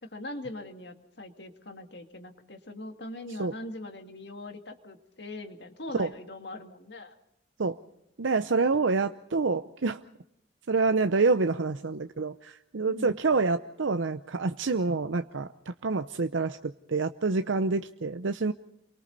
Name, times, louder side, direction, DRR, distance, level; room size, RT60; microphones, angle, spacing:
voice 1, 0.0-7.1 12.9-13.2, left 1 dB, 60° left, 6 dB, 2.2 m, -41 dB
voice 2, 8.2-10.0 10.7-18.5, right 3 dB, 80° right, 9 dB, 0.7 m, -27 dB
29.0 x 23.5 x 4.1 m, 0.79 s
head